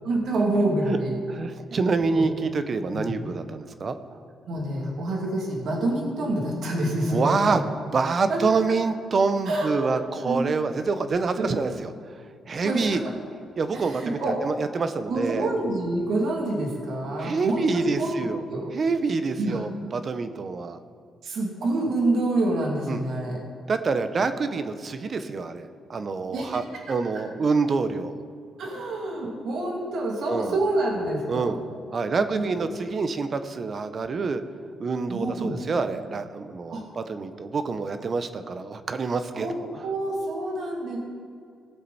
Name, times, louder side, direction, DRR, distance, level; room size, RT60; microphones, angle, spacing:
voice 1, 0.0-1.2 2.0-2.3 2.9-3.0 4.5-7.6 8.3-8.4 9.5-9.9 10.2-10.4 11.4-11.5 12.6-13.1 13.7-14.4 15.1-18.7 19.4-19.6 21.2-23.4 26.3-26.5 28.6-31.6 32.3-32.6 35.1-35.6 36.7-36.9 39.3-39.5 39.8-41.0, right 2 dB, 65° right, -1 dB, 2.7 m, -27 dB
voice 2, 1.3-4.0 7.1-7.6 7.9-11.9 12.5-13.0 13.6-15.5 17.2-18.4 18.7-20.8 22.9-23.0 23.7-28.2 30.3-30.6 31.3-31.6 31.9-34.4 34.8-39.8, right 4 dB, 45° right, 10 dB, 0.9 m, -27 dB
18.5 x 7.5 x 4.2 m, 2.3 s
cardioid pair, 90°, 0 cm